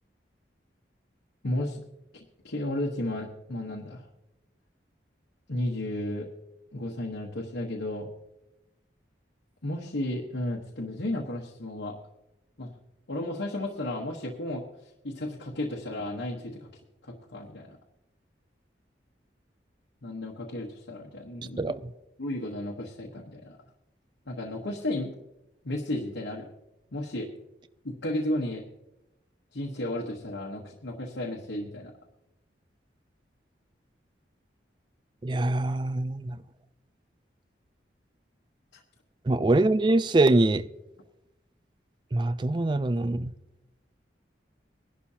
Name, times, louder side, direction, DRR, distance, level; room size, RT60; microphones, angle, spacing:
voice 1, 1.4-1.8 2.1-4.1 5.5-6.3 6.7-8.1 9.6-12.0 12.6-12.7 13.1-16.7 17.0-17.8 20.0-21.6 22.2-23.6 24.3-25.1 25.6-26.5 26.9-27.3 27.8-28.6 29.5-31.9 38.7-38.8, left 1 dB, 85° left, 1.3 m, -33 dB
voice 2, 35.2-36.4 39.3-40.6 42.1-43.3, right 2 dB, 25° right, 0.3 m, -24 dB
21.0 x 11.5 x 2.8 m
head